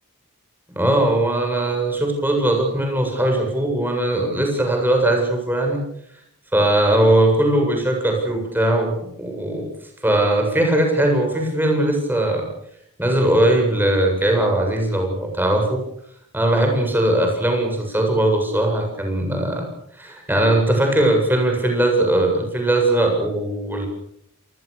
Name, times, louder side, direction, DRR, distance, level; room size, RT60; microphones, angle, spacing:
voice 1, 0.7-5.8 6.5-9.7 10.0-12.5 13.0-15.8 16.3-19.7 20.0-23.9, right 1 dB, 10° right, 2 dB, 7.7 m, -19 dB
28.5 x 20.5 x 6.9 m, 0.75 s
head